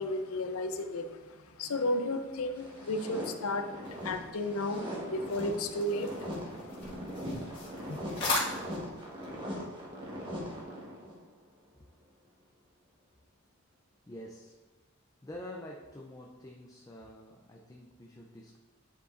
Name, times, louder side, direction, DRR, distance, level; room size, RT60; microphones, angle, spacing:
voice 1, 0.0-8.0, left 1 dB, 80° left, 7 dB, 0.6 m, -34 dB
sound 1, 2.6-11.2, equal, 25° right, 1.2 m, -40 dB
sound 2, 3.8-9.4, left 2 dB, 55° left, 1.6 m, -39 dB
voice 2, 14.1-14.6 15.2-18.6, left 1 dB, 15° left, 0 dB, 0.4 m, -47 dB
9.5 x 5.1 x 2.5 m, 1.3 s
head